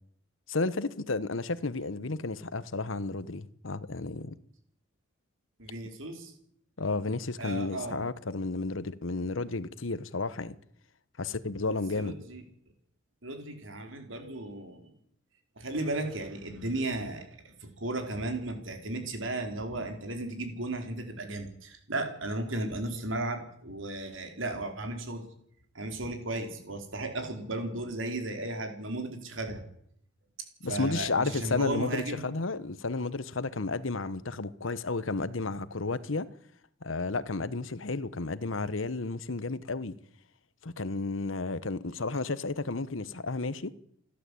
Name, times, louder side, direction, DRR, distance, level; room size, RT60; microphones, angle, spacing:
voice 1, 0.5-4.4 6.8-10.6 11.2-12.2 30.6-36.3 36.8-40.0 40.6-43.7, left 3 dB, 90° left, 1.2 m, -32 dB
voice 2, 5.6-6.3 7.4-8.1 11.6-12.4 13.2-14.9 15.6-25.2 25.7-29.6 30.6-32.2, right 2 dB, 85° right, 4.6 m, -35 dB
29.5 x 12.0 x 8.5 m
head